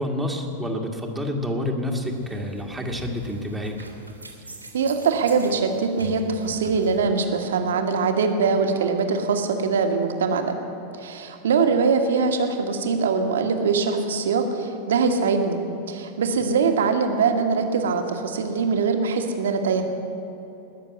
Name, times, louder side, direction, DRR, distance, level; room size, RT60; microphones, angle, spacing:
voice 1, 0.0-3.8, left 1 dB, 5° right, 0 dB, 1.8 m, -28 dB
sound 1, 1.9-7.0, right 1 dB, 85° right, 1.9 m, -42 dB
voice 2, 4.7-10.5 11.0-15.6 15.9-19.8, right 5 dB, 60° right, 5 dB, 1.5 m, -22 dB
20.0 x 6.8 x 9.7 m, 3.0 s
figure-of-eight pair, 90°, 0 cm